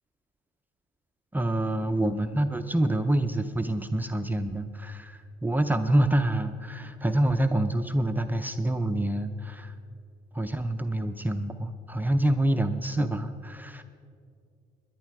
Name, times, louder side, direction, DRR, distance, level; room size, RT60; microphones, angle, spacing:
voice 1, 1.3-9.7 10.3-13.8, right 1 dB, 10° right, 6 dB, 0.5 m, -27 dB
18.0 x 11.0 x 4.7 m, 2.3 s
cardioid pair, 110°, 17 cm